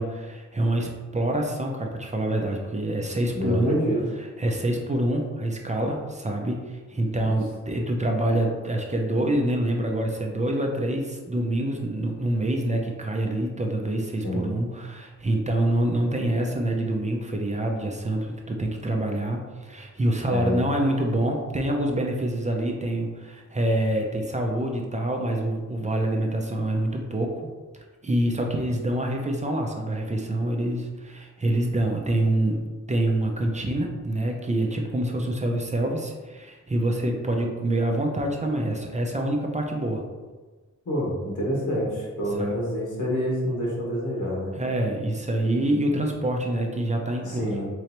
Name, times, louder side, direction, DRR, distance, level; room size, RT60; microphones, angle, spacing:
voice 1, 0.0-3.8 4.4-27.4 28.0-40.0 42.4-42.5 44.6-47.5, right 1 dB, 25° right, 1 dB, 0.5 m, -26 dB
voice 2, 3.3-4.0 7.2-7.3 14.2-14.5 20.3-20.7 40.8-44.5 47.2-47.7, equal, 85° left, -4 dB, 1.3 m, -27 dB
3.8 x 3.2 x 2.9 m, 1.3 s
wide cardioid pair, 130°, 30 cm